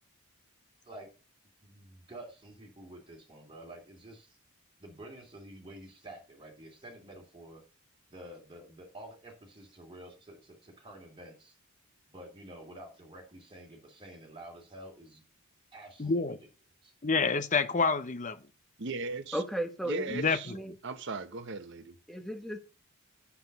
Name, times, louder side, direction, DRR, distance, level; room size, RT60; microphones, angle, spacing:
voice 1, 1.6-4.4 4.8-7.6 8.1-11.6 12.1-15.2 15.7-16.4 16.8-16.9, right 1 dB, 25° right, 2.8 m, -49 dB
voice 2, 16.0-16.4 17.0-18.4 20.1-20.6, left 4 dB, 35° left, 0.8 m, -28 dB
voice 3, 18.8-19.4 19.9-20.5 20.8-22.0, right 3 dB, 55° right, 1.0 m, -37 dB
voice 4, 19.3-20.8 22.1-22.6, right 1 dB, ahead, 1.3 m, -35 dB
8.1 x 7.0 x 5.3 m
head